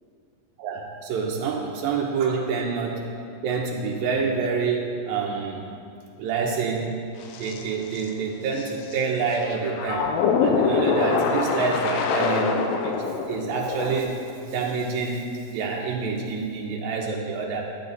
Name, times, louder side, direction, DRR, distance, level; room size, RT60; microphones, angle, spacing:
voice 1, 0.6-3.1 3.4-5.6 6.2-7.0 7.4-10.1 10.4-17.6, right 5 dB, 80° right, -1 dB, 2.4 m, -27 dB
sound 1, 7.2-7.6 7.9-8.1 8.6-9.0 9.3-14.0, left 5 dB, 85° left, 2.5 m, -24 dB
10.5 x 9.4 x 4.0 m, 2.6 s
omnidirectional pair, 4.1 m